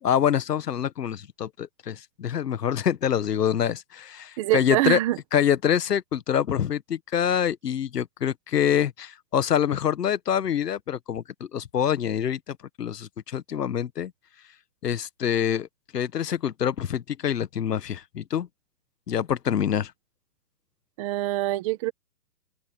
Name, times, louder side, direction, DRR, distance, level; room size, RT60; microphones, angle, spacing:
voice 1, 0.0-5.0 5.3-14.1 14.8-15.7 15.9-18.5 19.1-19.9, left 9 dB, 90° left, 1.5 m, -26 dB
voice 2, 4.4-5.2 21.0-21.9, right 16 dB, 20° right, 1.5 m, -24 dB
open air
hypercardioid pair, 170°, 46 cm